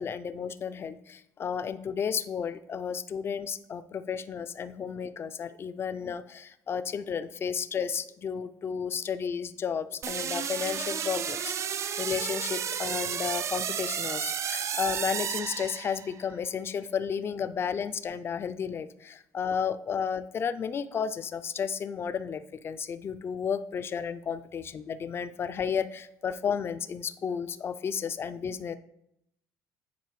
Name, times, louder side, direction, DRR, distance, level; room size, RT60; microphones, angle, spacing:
voice 1, 0.0-11.5 12.0-28.8, left 7 dB, 35° left, 12 dB, 0.4 m, -32 dB
sound 1, 10.0-16.2, right 8 dB, 45° right, 0.4 m, -32 dB
9.5 x 4.0 x 3.1 m, 0.78 s
cardioid pair, 100°, 7 cm